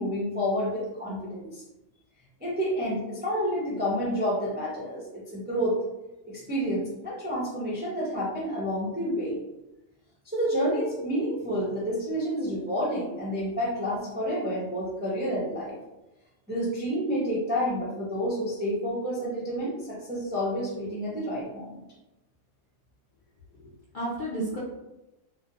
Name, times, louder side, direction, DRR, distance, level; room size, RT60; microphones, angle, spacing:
voice 1, 0.0-1.6 2.4-5.8 6.2-9.4 10.3-15.8 16.5-21.8, equal, 15° right, -7 dB, 0.3 m, -29 dB
voice 2, 23.5-24.6, right 1 dB, 60° left, -7 dB, 0.5 m, -33 dB
2.4 x 2.2 x 2.8 m, 0.95 s
omnidirectional pair, 1.4 m